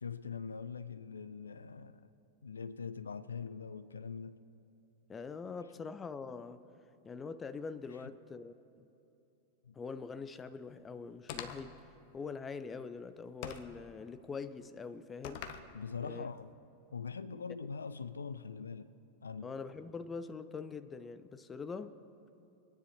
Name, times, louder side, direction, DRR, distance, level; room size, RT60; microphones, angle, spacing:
voice 1, 0.0-2.1 2.4-4.4 9.6-9.8 15.7-16.5 16.9-18.9 19.2-19.5, left 5 dB, 75° left, 0.4 m, -42 dB
voice 2, 5.1-6.6 7.0-8.9 9.7-11.9 12.1-15.5 16.0-16.3 17.3-17.4 19.4-22.0, left 5 dB, 20° left, 0.5 m, -44 dB
sound 1, 11.3-11.8 13.4-13.8 15.2-15.7, left 8 dB, 50° left, 0.8 m, -43 dB
24.5 x 9.8 x 4.5 m
figure-of-eight pair, 90°, 0 cm